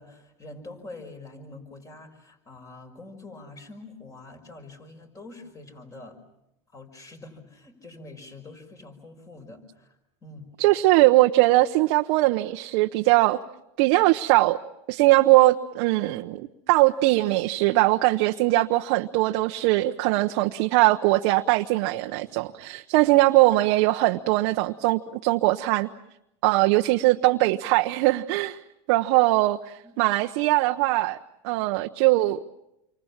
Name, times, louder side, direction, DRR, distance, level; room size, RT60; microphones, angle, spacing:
voice 1, 0.0-6.2 6.7-10.0 10.2-10.5 29.8-29.9, left 2 dB, 20° left, 6 dB, 5.7 m, -45 dB
voice 2, 10.6-13.4 13.8-14.6 14.9-25.9 26.4-28.6 28.9-31.2 31.4-32.4, right 19 dB, 65° right, 4 dB, 0.9 m, -21 dB
29.0 x 25.0 x 7.4 m, 0.85 s
supercardioid pair, 115°, 15 cm